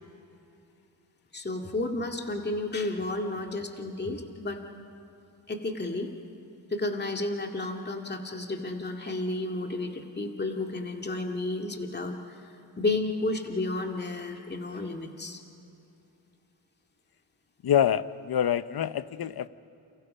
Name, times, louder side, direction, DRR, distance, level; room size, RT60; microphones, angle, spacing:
voice 1, 1.3-4.6 5.5-6.1 6.7-12.4 12.8-15.4, left 2 dB, 25° left, 3 dB, 2.2 m, -32 dB
voice 2, 17.6-19.5, left 9 dB, 55° left, 14 dB, 0.9 m, -26 dB
29.5 x 29.0 x 5.7 m, 2.9 s
cardioid pair, 75°, 44 cm